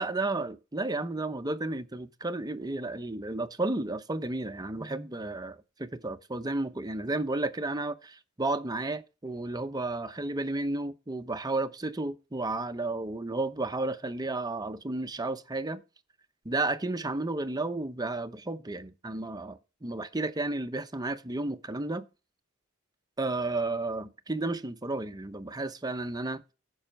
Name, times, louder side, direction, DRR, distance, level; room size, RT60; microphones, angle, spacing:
voice 1, 0.0-15.8 16.4-22.1 23.2-26.4, right 2 dB, 20° right, 0.7 m, -32 dB
14.0 x 5.6 x 4.4 m
head